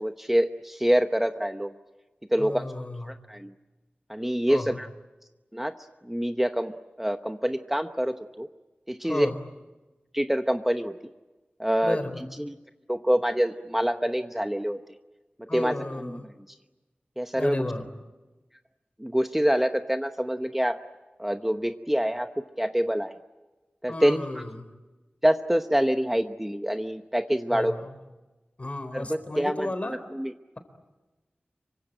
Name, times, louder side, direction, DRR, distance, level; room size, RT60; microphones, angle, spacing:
voice 1, 0.0-1.7 2.3-2.7 3.0-3.5 4.1-4.9 5.5-5.7 6.0-8.5 8.9-9.3 10.1-10.9 11.6-12.0 12.4-12.5 12.9-14.8 15.5-15.7 16.0-16.2 17.2-17.6 19.0-20.8 21.2-23.1 23.8-24.2 25.2-27.7 28.9-30.3, equal, 5° right, 7 dB, 0.9 m, -26 dB
voice 2, 2.4-3.2 4.5-4.8 9.0-9.4 11.8-12.2 15.5-16.3 17.3-17.9 23.9-24.5 27.5-27.9 28.6-30.0, left 2 dB, 40° left, 9 dB, 3.9 m, -33 dB
26.5 x 24.5 x 8.9 m, 1.1 s
wide cardioid pair, 80°, 3 cm